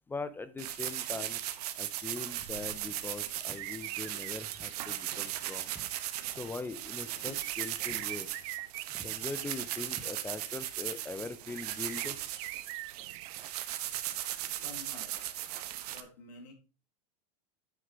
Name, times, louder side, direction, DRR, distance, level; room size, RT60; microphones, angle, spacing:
voice 1, 0.1-1.4 1.8-5.7 6.3-8.3 9.0-12.2, left 3 dB, 10° left, 13 dB, 0.5 m, -41 dB
sound 1, 0.6-16.0, right 13 dB, 75° right, 1.2 m, -38 dB
Walk footsteps, 2.3-2.6 3.5-3.7 4.5-4.8 5.1-6.5 6.8-7.0 7.4-7.6 7.9-8.1 8.4-8.7 8.9-9.2 9.9-10.6, right 3 dB, 10° right, 1.1 m, -54 dB
sound 2, 3.6-5.2 7.3-9.5 9.9-10.0 11.6-13.4, right 18 dB, 55° right, 0.6 m, -43 dB
voice 2, 14.4-15.4 15.8-16.5, left 3 dB, 90° left, 2 dB, 2.9 m, -51 dB
8.2 x 5.7 x 4.7 m, 0.34 s
supercardioid pair, 135°, 20 cm